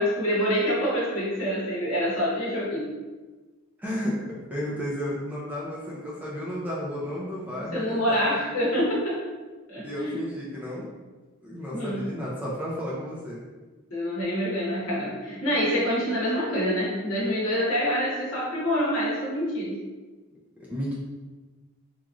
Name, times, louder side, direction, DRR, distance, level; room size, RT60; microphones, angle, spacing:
voice 1, 0.0-2.9 7.6-9.2 9.7-10.2 11.7-12.0 13.9-19.8, equal, 70° left, -5 dB, 0.8 m, -26 dB
voice 2, 3.8-4.2 4.5-8.4 9.8-10.9 11.4-13.4 20.6-20.9, equal, 5° right, -6 dB, 0.3 m, -32 dB
2.9 x 2.4 x 2.3 m, 1.3 s
head